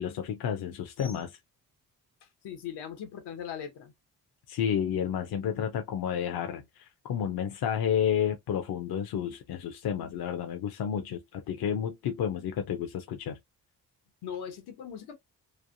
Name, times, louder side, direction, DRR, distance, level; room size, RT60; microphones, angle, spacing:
voice 1, 0.0-1.4 4.5-13.4, left 8 dB, 70° left, 0.7 m, -31 dB
voice 2, 2.4-3.9 14.2-15.1, left 8 dB, 90° left, 1.0 m, -39 dB
3.2 x 2.1 x 2.5 m
cardioid pair, 100°, 38 cm